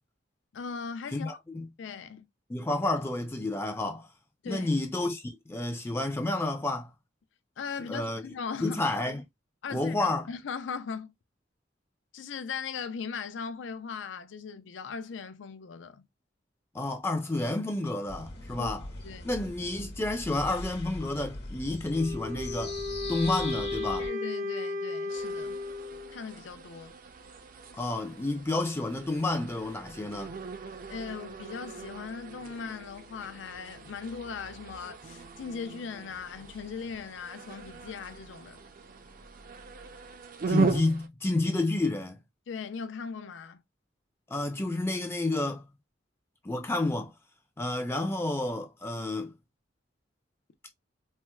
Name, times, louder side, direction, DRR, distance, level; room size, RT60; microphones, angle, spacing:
voice 1, 0.5-1.4 1.8-2.3 4.4-4.7 7.6-8.9 9.6-11.1 12.1-16.1 18.5-18.8 19.0-19.4 24.0-25.6 26.1-27.0 30.9-38.6 42.5-43.6, left 6 dB, 75° left, 0.4 m, -39 dB
voice 2, 1.1-1.7 2.5-4.1 4.5-6.9 7.9-8.2 8.6-9.2 9.7-10.3 16.7-18.8 19.2-22.8 23.1-24.1 27.7-30.3 40.5-42.2 44.3-45.6 46.4-47.1 47.6-49.3, left 2 dB, 15° left, 0.4 m, -30 dB
sound 1, 18.1-24.1, left 2 dB, 60° left, 1.1 m, -40 dB
Wind instrument woodwind instrument, 21.8-26.2, left 2 dB, 90° right, 0.9 m, -35 dB
sound 2, 25.1-41.1, right 4 dB, 45° right, 0.4 m, -38 dB
4.3 x 2.1 x 2.2 m
head